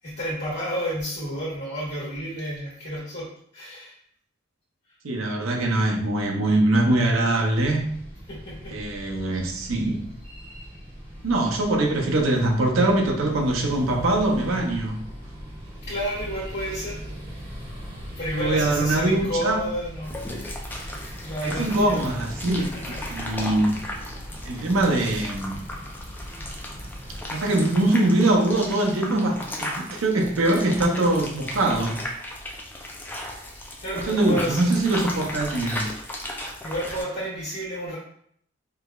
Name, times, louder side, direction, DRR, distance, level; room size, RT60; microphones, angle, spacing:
voice 1, 0.0-3.3 3.5-3.9 8.3-8.7 15.9-17.0 18.2-22.1 22.6-23.0 33.8-34.7 36.6-38.0, equal, 60° left, -10 dB, 1.3 m, -31 dB
voice 2, 5.0-7.9 8.7-10.1 11.2-15.0 18.3-19.6 21.4-22.6 23.1-23.7 24.4-25.6 27.3-32.0 33.9-35.8, right 2 dB, 80° right, 1 dB, 0.6 m, -22 dB
sound 1, 7.5-27.2, equal, 25° right, 0.7 m, -39 dB
sound 2, 20.0-37.0, left 1 dB, 10° left, 0.3 m, -36 dB
4.7 x 2.0 x 2.3 m, 0.65 s
head